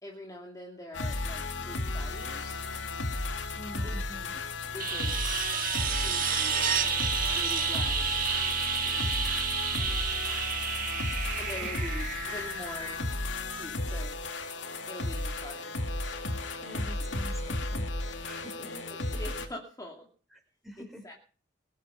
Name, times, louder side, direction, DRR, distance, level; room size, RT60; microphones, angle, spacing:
voice 1, 0.0-2.6 3.8-4.0 4.3-4.4 4.7-5.3 5.9-6.9 7.3-8.2 8.8-9.3 9.8-10.1 11.4-13.0 13.5-14.2 14.8-15.7 18.6-20.1 20.8-21.1, left 1 dB, 20° left, -1 dB, 2.6 m, -44 dB
sound 1, 0.9-19.5, left 2 dB, 80° left, 2.4 m, -34 dB
voice 2, 3.6-4.3 11.4-11.7 16.6-17.9 18.2-18.7 20.3-21.1, equal, ahead, 1 dB, 5.3 m, -46 dB
sound 2, 4.8-13.5 15.8-15.9, right 7 dB, 50° right, 1.9 m, -31 dB
22.5 x 8.4 x 5.6 m, 0.40 s
head